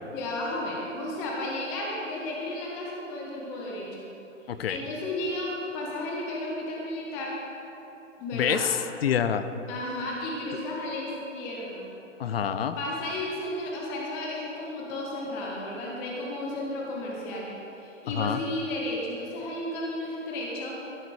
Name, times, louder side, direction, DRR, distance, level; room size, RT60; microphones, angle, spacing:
voice 1, 0.1-4.1 4.7-7.3 8.2-8.6 9.7-11.9 12.8-17.5 17.8-20.8, left 1 dB, 5° left, -3 dB, 0.4 m, -33 dB
voice 2, 4.5-4.8 8.3-9.5 12.2-12.8 18.1-18.4, left 8 dB, 50° left, 11 dB, 0.7 m, -27 dB
14.0 x 8.1 x 4.8 m, 3.0 s
figure-of-eight pair, 125°, 38 cm